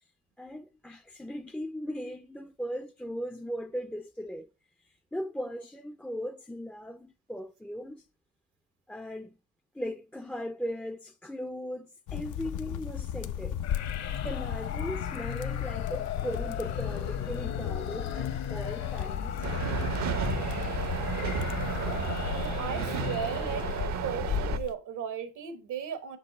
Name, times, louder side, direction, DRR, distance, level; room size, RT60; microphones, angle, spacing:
voice 1, 0.4-4.5 5.1-8.1 8.9-9.4 9.7-13.6 14.2-19.5, equal, 5° left, 0.3 m, -38 dB
sound 1, 12.1-24.7, left 10 dB, 85° left, 0.6 m, -35 dB
sound 2, 13.6-24.2, left 8 dB, 60° left, 1.0 m, -37 dB
sound 3, 19.4-24.6, right 8 dB, 65° right, 0.7 m, -33 dB
voice 2, 22.3-23.7 24.0-26.2, right 8 dB, 80° right, 1.1 m, -36 dB
6.3 x 5.3 x 4.0 m
cardioid pair, 90°, 30 cm